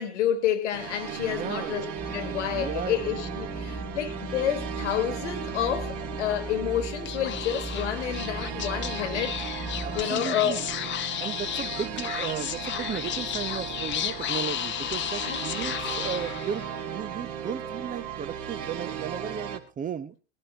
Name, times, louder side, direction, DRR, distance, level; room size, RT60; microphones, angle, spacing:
voice 1, 0.0-9.4 9.9-10.6 15.2-15.4, left 10 dB, 65° left, 2.0 m, -29 dB
sound 1, 0.7-19.6, right 8 dB, 40° right, 2.0 m, -36 dB
voice 2, 1.2-1.8 2.5-3.0 9.8-10.6 11.2-20.2, right 8 dB, 20° right, 0.9 m, -35 dB
sound 2, 2.0-10.0, equal, 5° left, 0.7 m, -38 dB
Speech / Whispering, 7.0-16.8, left 10 dB, 30° left, 1.0 m, -33 dB
20.5 x 13.0 x 3.0 m
figure-of-eight pair, 80°, 38 cm